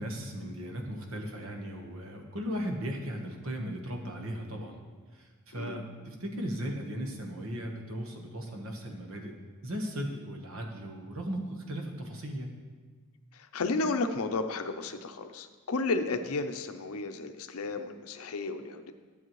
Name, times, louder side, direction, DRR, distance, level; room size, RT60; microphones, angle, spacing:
voice 1, 0.0-4.8 5.1-9.3 9.6-12.6, equal, 65° right, 2 dB, 1.2 m, -37 dB
voice 2, 13.3-18.9, left 3 dB, 75° left, 8 dB, 0.6 m, -33 dB
11.5 x 7.1 x 3.1 m, 1.5 s
head